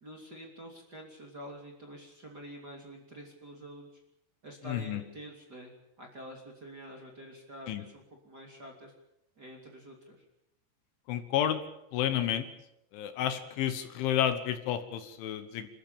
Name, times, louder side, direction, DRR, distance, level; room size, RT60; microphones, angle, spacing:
voice 1, 0.0-3.9 4.4-5.7 6.0-8.9 9.3-10.2, equal, 25° right, 0 dB, 2.8 m, -47 dB
voice 2, 4.7-5.0 7.7-7.8 11.1-11.6 11.9-12.5 12.9-15.7, left 10 dB, 75° left, 10 dB, 3.5 m, -30 dB
27.0 x 13.5 x 8.8 m, 0.87 s
omnidirectional pair, 5.7 m